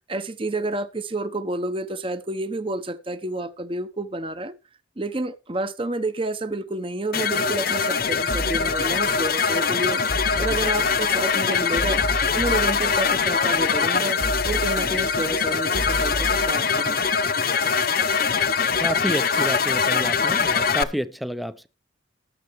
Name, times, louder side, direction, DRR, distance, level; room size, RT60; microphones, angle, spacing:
voice 1, 0.1-4.5 5.0-10.0 10.4-12.0 12.3-14.2 14.4-17.1, right 2 dB, 25° right, 0.9 m, -29 dB
sound 1, 7.1-20.8, left 5 dB, 50° left, 0.9 m, -23 dB
sound 2, 8.3-16.5, right 1 dB, 65° right, 2.7 m, -32 dB
voice 2, 18.8-21.7, equal, ahead, 0.6 m, -29 dB
19.0 x 6.7 x 3.2 m
head